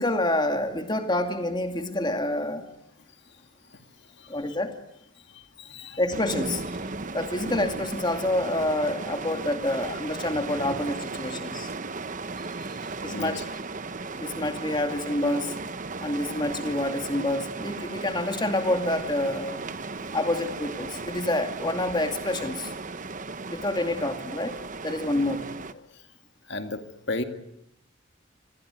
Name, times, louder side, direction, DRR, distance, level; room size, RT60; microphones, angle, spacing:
voice 1, 0.0-2.7 4.3-4.8 6.0-6.6 7.1-11.7 13.0-13.4 14.2-15.5 16.0-19.6 20.1-22.7 23.5-25.4, left 1 dB, 20° left, 6 dB, 2.4 m, -27 dB
voice 2, 3.7-4.6 5.2-6.0 7.0-7.1 12.4-13.4 19.9-20.1 25.1-25.3 25.7-26.1 26.4-27.2, left 2 dB, 55° left, 7 dB, 2.2 m, -37 dB
sound 1, 6.1-25.7, right 3 dB, 40° right, 1.0 m, -36 dB
27.0 x 21.5 x 9.4 m, 0.76 s
head